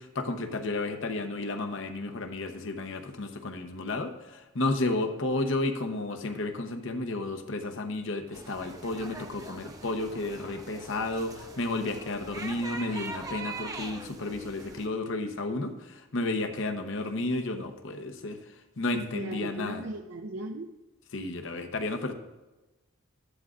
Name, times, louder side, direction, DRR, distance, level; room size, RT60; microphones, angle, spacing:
voice 1, 0.0-18.4 18.8-19.8 21.1-22.1, left 2 dB, 65° left, 6 dB, 0.9 m, -32 dB
sound 1, 8.3-14.9, right 2 dB, 15° right, 0.6 m, -42 dB
voice 2, 18.9-20.8, right 2 dB, 65° right, 3 dB, 0.5 m, -37 dB
13.0 x 11.5 x 2.5 m, 1.1 s
head